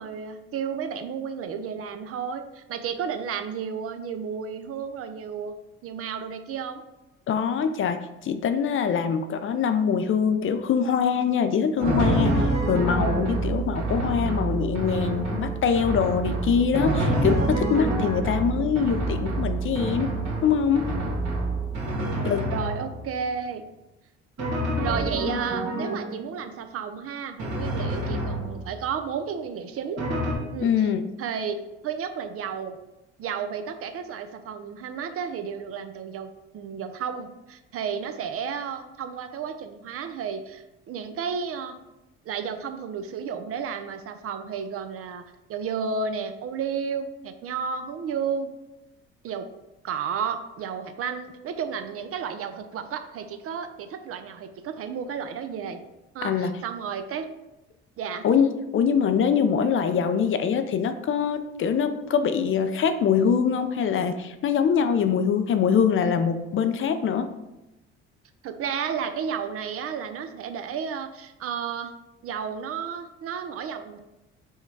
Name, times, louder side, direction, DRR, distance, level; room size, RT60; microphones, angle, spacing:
voice 1, 0.0-5.5 5.8-6.8 12.5-12.7 18.3-18.4 22.0-23.7 24.8-30.0 30.5-30.9 31.2-32.8 33.2-41.8 42.3-45.2 45.5-48.5 49.2-49.5 49.8-55.8 56.1-57.3 58.0-58.3 68.4-71.9 72.2-74.0, right 6 dB, 50° right, 9 dB, 0.5 m, -32 dB
voice 2, 7.3-20.1 20.4-20.9 22.2-22.5 30.6-31.0 56.2-56.6 58.2-67.3, left 7 dB, 45° left, 9 dB, 0.4 m, -23 dB
Drum, 11.8-23.2 24.4-26.3 27.4-28.9 30.0-30.3, right 1 dB, 65° right, 1.5 m, -27 dB
4.5 x 2.2 x 4.6 m, 0.96 s
supercardioid pair, 70°, 29 cm